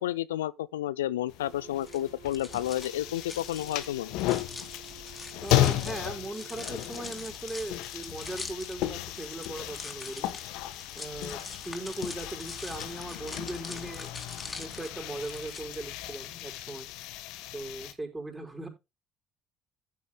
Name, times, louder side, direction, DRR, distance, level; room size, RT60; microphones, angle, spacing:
voice 1, 0.0-4.1, left 13 dB, 90° left, 0.4 m, -31 dB
sound 1, 1.3-17.9, left 14 dB, 70° left, 1.2 m, -34 dB
sound 2, 1.4-7.1, right 12 dB, 75° right, 4.4 m, -52 dB
sound 3, 1.8-15.6, left 3 dB, 20° left, 3.2 m, -44 dB
voice 2, 5.4-10.3 10.9-14.1 14.6-16.9 17.5-18.7, right 2 dB, 15° right, 5.5 m, -39 dB
15.5 x 8.1 x 2.3 m
hypercardioid pair, 60°, 0 cm